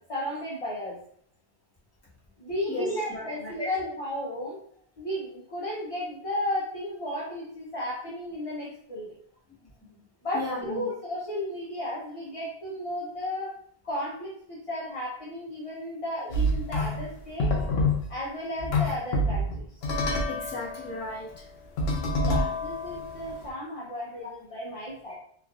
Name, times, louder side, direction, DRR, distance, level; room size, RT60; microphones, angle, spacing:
voice 1, 0.1-1.0 2.4-4.6 5.0-9.1 10.2-13.6 13.8-17.5 18.1-19.6 22.2-25.1, left 1 dB, 40° left, -5 dB, 0.7 m, -34 dB
voice 2, 2.7-3.7 10.3-10.9 20.3-21.3 24.2-24.3 25.0-25.2, left 1 dB, 15° left, -8 dB, 1.1 m, -34 dB
sound 1, 16.3-17.1 17.4-18.1 18.6-23.5, left 1 dB, 75° left, 0.8 m, -27 dB
3.3 x 2.5 x 2.3 m, 0.62 s
omnidirectional pair, 1.0 m